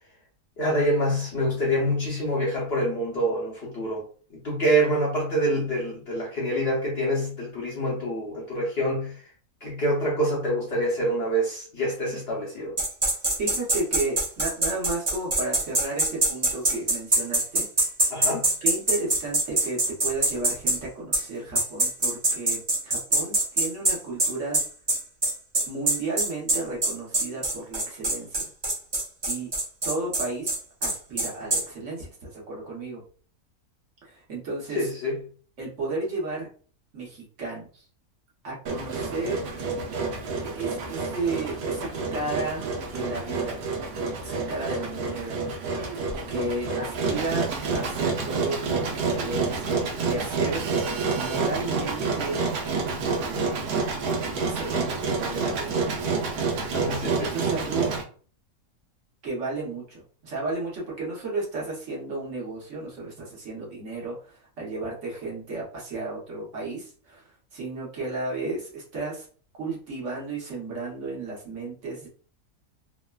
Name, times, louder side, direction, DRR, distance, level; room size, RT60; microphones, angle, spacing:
voice 1, 0.6-4.1 4.4-9.3 9.6-12.7 18.1-18.5 34.7-35.1 56.6-57.3, equal, 55° left, -4 dB, 0.8 m, -26 dB
sound 1, 12.8-20.8 21.1-21.2 21.5-31.6, right 2 dB, 35° right, 0.4 m, -23 dB
voice 2, 13.4-17.7 18.6-24.6 25.7-28.4 29.3-29.5 29.8-30.5 30.8-33.0 34.0-34.9 35.6-36.5 36.9-37.9 38.4-39.4 40.4-42.6 42.9-43.6 44.2-45.4 46.3-50.6 51.1-52.4 53.2-53.7 54.3-56.2 57.3-57.9 59.2-69.3 69.6-72.1, right 3 dB, 60° right, -3 dB, 1.1 m, -33 dB
Engine, 38.7-58.0, right 4 dB, 80° right, 1.1 m, -28 dB
3.1 x 2.0 x 2.2 m, 0.42 s
omnidirectional pair, 1.6 m